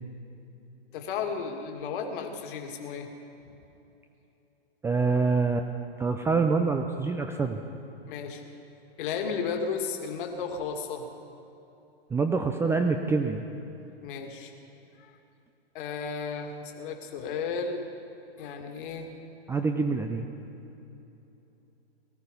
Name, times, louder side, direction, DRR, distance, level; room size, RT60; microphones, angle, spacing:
voice 1, 0.9-3.1 8.1-8.4 9.0-11.1 14.0-14.5 15.0-15.1 15.7-17.8 18.4-19.1, left 5 dB, 55° left, 3 dB, 2.0 m, -34 dB
voice 2, 4.8-5.7 6.0-7.6 12.1-13.4 19.5-20.3, right 4 dB, 10° right, 5 dB, 0.5 m, -26 dB
18.5 x 14.0 x 5.2 m, 3.0 s
hypercardioid pair, 120°, 32 cm